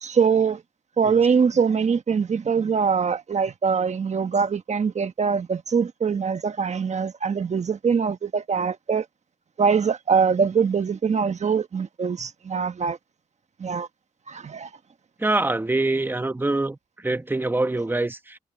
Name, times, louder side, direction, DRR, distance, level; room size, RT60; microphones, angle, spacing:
voice 1, 0.0-0.6 1.0-9.0 9.6-13.0 13.6-13.9 14.3-14.7, right 6 dB, 55° right, 1.3 m, -23 dB
voice 2, 15.2-16.8 17.0-18.4, right 2 dB, 15° right, 1.0 m, -24 dB
cardioid pair, 75°, 14 cm